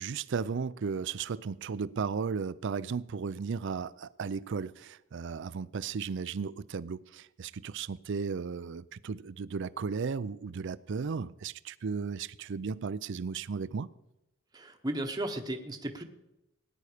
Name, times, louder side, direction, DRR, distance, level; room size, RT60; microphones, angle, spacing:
voice 1, 0.0-13.9, right 5 dB, 60° right, 0.4 m, -35 dB
voice 2, 14.5-16.0, right 1 dB, 20° right, 1.0 m, -35 dB
18.0 x 9.7 x 5.0 m
head